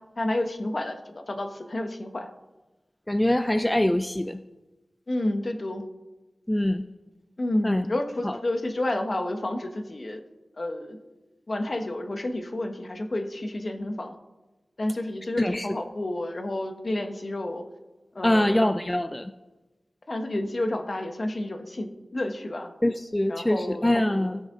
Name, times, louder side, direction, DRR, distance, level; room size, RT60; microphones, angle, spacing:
voice 1, 0.2-2.3 5.1-5.8 7.4-10.2 10.6-11.0 11.5-14.2 14.8-17.6 18.1-18.6 20.1-22.7 23.3-23.9, left 1 dB, 55° left, 6 dB, 1.2 m, -30 dB
voice 2, 3.1-4.4 6.5-6.8 7.6-7.8 8.2-8.4 15.4-15.7 18.2-19.3 22.8-24.4, left 1 dB, 20° left, 10 dB, 0.5 m, -24 dB
15.5 x 6.4 x 3.8 m, 1.1 s
cardioid pair, 40°, 0 cm